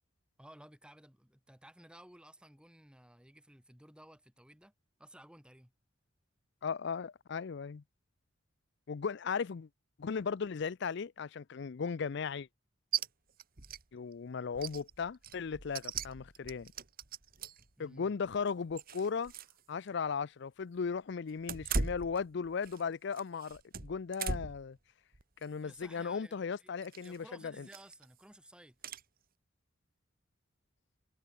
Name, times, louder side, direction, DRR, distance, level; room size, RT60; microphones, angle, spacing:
voice 1, 0.4-4.7 5.0-5.7 17.8-18.1 25.6-26.7 27.0-28.8, right 1 dB, 5° right, 3.6 m, -56 dB
voice 2, 6.6-7.8 8.9-9.7 10.0-12.5 13.9-16.7 17.8-19.3 19.7-24.8 25.4-27.7, left 5 dB, 60° left, 0.5 m, -37 dB
sound 1, 12.9-13.1 13.4-13.8 14.1-14.2 14.5-17.7 18.2-19.6 19.9-20.0 21.4-22.8 23.1-24.7 25.1-25.5 26.8-27.2 27.7-28.0 28.8-29.0, right 5 dB, 50° right, 1.7 m, -39 dB
head